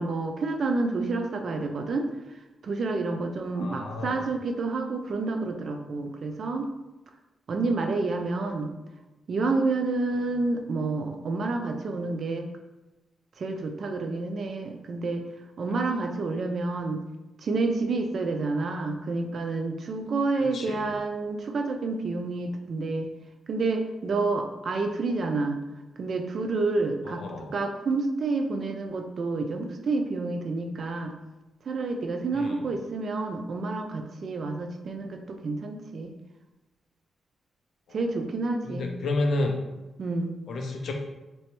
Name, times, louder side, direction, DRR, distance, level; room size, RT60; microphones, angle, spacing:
voice 1, 0.0-2.1 2.6-6.7 7.5-8.7 9.3-12.5 13.4-15.2 15.6-17.0 17.4-23.1 23.5-25.6 26.0-27.2 27.5-31.1 31.7-36.1 37.9-38.9 40.0-40.4, right 3 dB, 55° right, 4 dB, 0.4 m, -29 dB
voice 2, 3.5-4.2 16.2-16.3 20.5-20.9 27.1-27.5 32.3-32.6 37.9-38.0 38.7-39.5 40.5-40.9, left 2 dB, 70° left, 3 dB, 0.5 m, -30 dB
3.2 x 3.0 x 3.0 m, 1.1 s
cardioid pair, 105°, 0 cm